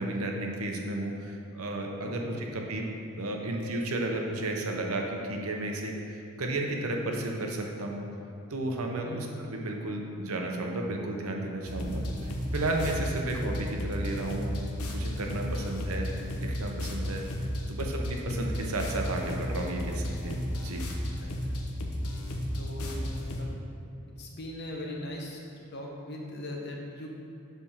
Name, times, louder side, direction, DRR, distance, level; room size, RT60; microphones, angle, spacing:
voice 1, 0.0-2.8 3.2-8.0 8.5-14.5 14.9-16.1 16.4-17.2 17.7-20.4 20.6-20.8, right 2 dB, 80° right, 1 dB, 0.8 m, -33 dB
voice 2, 2.0-2.4 9.0-9.3 21.2-21.6 22.6-23.1 23.4-23.5 24.2-27.1, left 1 dB, 50° left, -1 dB, 0.9 m, -40 dB
sound 1, 11.7-23.4, left 1 dB, 85° left, 0.8 m, -33 dB
7.2 x 3.4 x 5.6 m, 2.6 s
head